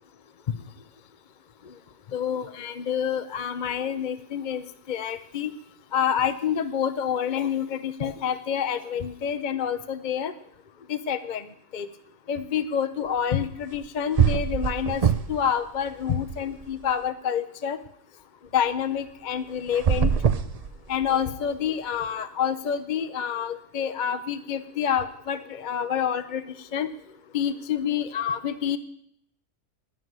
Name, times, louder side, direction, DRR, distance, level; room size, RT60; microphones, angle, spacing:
voice 1, 2.1-5.5 5.9-10.3 10.9-11.5 11.7-11.9 12.3-17.8 18.5-20.1 20.9-26.4 26.7-26.9 27.3-28.8, left 8 dB, 45° left, 11 dB, 0.6 m, -28 dB
sound 1, 13.7-13.9 14.2-15.5 15.8-16.9 19.7-21.2, right 7 dB, 75° right, 0.3 m, -24 dB
13.0 x 9.6 x 9.2 m, 0.70 s
omnidirectional pair, 1.5 m